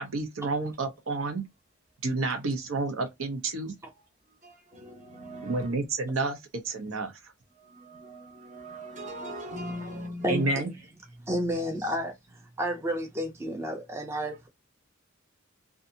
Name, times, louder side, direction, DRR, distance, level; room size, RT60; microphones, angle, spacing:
voice 1, 0.0-1.5 2.0-3.7 5.4-7.3 10.3-10.7, right 3 dB, 80° right, 0.7 m, -30 dB
voice 2, 4.4-5.7 7.6-10.5 11.8-12.0, right 1 dB, 35° right, 0.9 m, -40 dB
voice 3, 10.2-10.7 11.2-14.5, equal, 15° right, 0.4 m, -31 dB
2.6 x 2.4 x 2.6 m
head